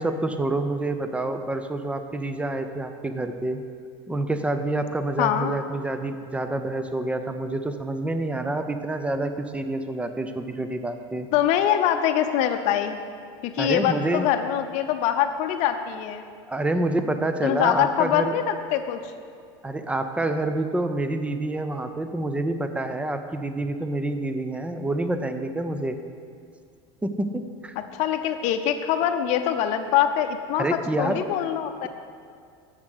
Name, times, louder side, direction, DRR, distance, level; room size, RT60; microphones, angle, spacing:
voice 1, 0.0-3.6 4.1-11.3 13.6-14.3 16.5-18.4 19.6-26.0 27.0-27.7 30.6-31.2, right 2 dB, 10° right, 8 dB, 0.6 m, -27 dB
voice 2, 5.2-5.5 11.3-13.0 13.4-16.2 17.4-19.0 27.8-30.6 31.0-31.9, left 10 dB, 60° left, 7 dB, 0.7 m, -24 dB
6.9 x 6.5 x 6.7 m, 2.3 s
supercardioid pair, 95°, 14 cm